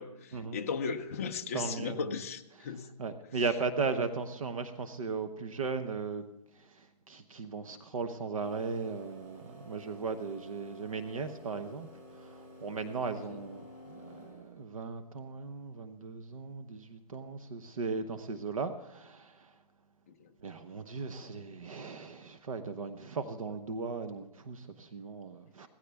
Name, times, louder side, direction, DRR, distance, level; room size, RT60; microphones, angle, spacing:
voice 1, 0.0-2.9 13.3-13.4 20.1-20.3, left 5 dB, 20° left, 4 dB, 0.6 m, -37 dB
voice 2, 1.5-2.1 2.6-2.7 3.0-6.2 6.5-11.9 12.1-19.5 20.4-25.7, right 4 dB, 60° right, 8 dB, 1.0 m, -37 dB
sound 1, 8.4-14.7, equal, 25° right, 4.6 m, -52 dB
17.0 x 15.0 x 3.5 m, 0.95 s
hypercardioid pair, 175°, 20 cm